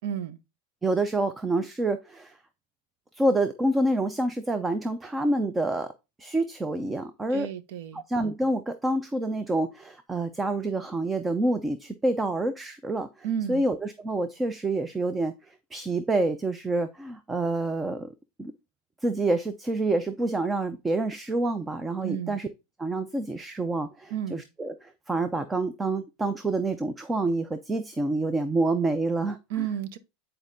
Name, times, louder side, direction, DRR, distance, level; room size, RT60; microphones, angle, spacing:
voice 1, 0.0-0.4 7.3-8.0 13.2-13.6 22.0-22.4 24.1-24.4 29.5-30.0, right 9 dB, 65° right, 0.7 m, -32 dB
voice 2, 0.8-2.3 3.1-5.9 6.2-7.5 7.9-13.1 13.5-15.3 15.7-18.1 18.4-18.5 19.0-22.5 22.8-29.4, right 2 dB, 10° right, 0.4 m, -27 dB
9.2 x 4.4 x 2.6 m
supercardioid pair, 145°, 0 cm